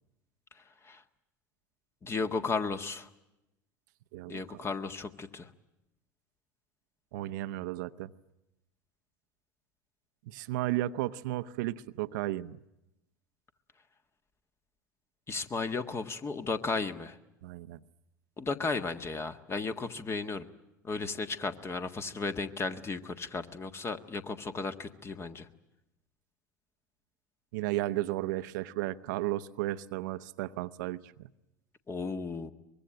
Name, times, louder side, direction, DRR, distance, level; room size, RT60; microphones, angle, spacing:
voice 1, 2.0-3.1 4.3-5.5 15.3-17.2 18.4-20.4 20.8-25.5 31.9-32.5, left 4 dB, 25° left, 9 dB, 1.7 m, -34 dB
voice 2, 4.1-4.7 7.1-8.1 10.3-12.6 17.4-17.8 27.5-31.3, right 16 dB, 65° right, 11 dB, 0.8 m, -34 dB
24.0 x 22.0 x 8.9 m, 0.90 s
hypercardioid pair, 85°, 10 cm